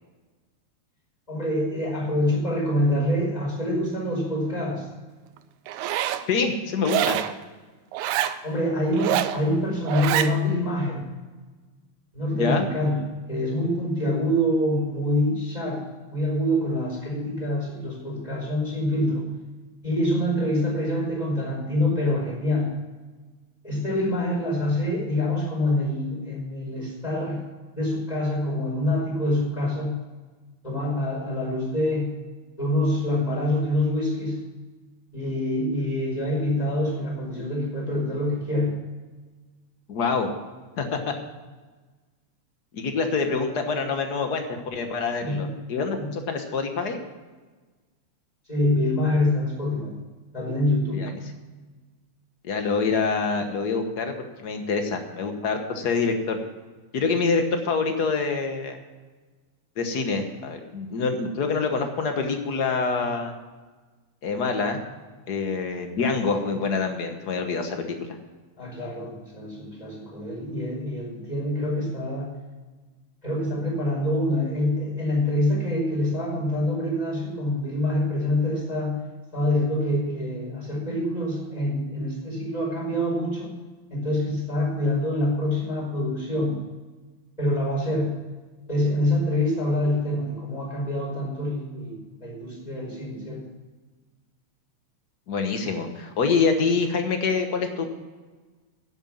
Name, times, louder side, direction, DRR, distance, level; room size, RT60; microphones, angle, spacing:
voice 1, 1.3-4.9 8.4-11.0 12.1-13.0 13.3-15.8 16.1-19.3 19.8-22.7 23.6-27.4 27.7-30.0 30.6-32.1 32.6-34.4 35.1-38.8 45.2-45.5 46.0-46.1 48.5-49.9 50.3-51.0 68.6-72.3 73.2-79.0 79.3-83.5 83.9-86.6 87.4-88.1 88.7-93.4, left 1 dB, 10° left, -3 dB, 5.0 m, -25 dB
Zipper (clothing), 5.7-6.2 6.8-7.3 7.9-8.4 8.9-9.4 9.9-10.3, right 12 dB, 85° right, 2.1 m, -25 dB
voice 2, 6.3-7.2 12.3-12.7 39.9-40.3 40.8-41.1 42.7-47.0 50.9-51.2 52.4-54.1 54.4-56.4 56.9-58.8 59.8-63.3 64.2-64.8 65.3-68.0 95.3-97.8, left 4 dB, 55° left, 6 dB, 1.1 m, -26 dB
10.5 x 8.1 x 7.3 m, 1.3 s
omnidirectional pair, 3.3 m